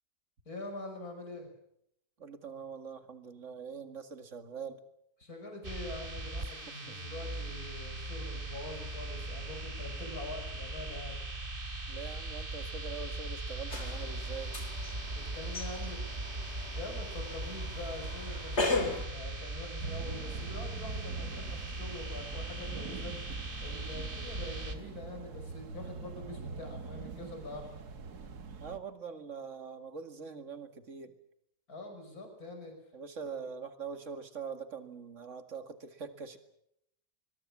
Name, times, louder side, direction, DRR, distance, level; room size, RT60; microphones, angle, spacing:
voice 1, 0.5-1.5 5.2-11.2 13.0-13.1 15.1-16.0 16.7-27.8 31.7-32.7 33.2-33.3, left 2 dB, 70° left, 4 dB, 6.3 m, -44 dB
voice 2, 2.2-4.8 6.7-7.0 11.9-14.7 23.9-24.1 28.6-31.1 32.9-36.4, right 6 dB, 50° right, 8 dB, 2.4 m, -43 dB
sound 1, 5.6-24.7, right 2 dB, 35° right, 2.7 m, -39 dB
sound 2, 13.7-19.1, left 3 dB, 45° left, 3.6 m, -37 dB
sound 3, 19.8-28.8, right 5 dB, 80° right, 2.1 m, -44 dB
24.5 x 22.5 x 7.3 m, 0.76 s
omnidirectional pair, 1.7 m